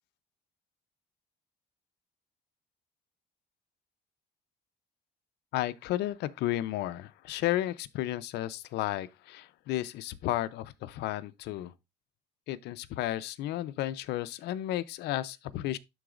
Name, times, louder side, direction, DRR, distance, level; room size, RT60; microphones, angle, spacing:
voice 1, 5.5-11.7 12.5-15.8, left 14 dB, 80° left, 0.6 m, -33 dB
12.0 x 4.0 x 2.4 m
cardioid pair, 110°, 17 cm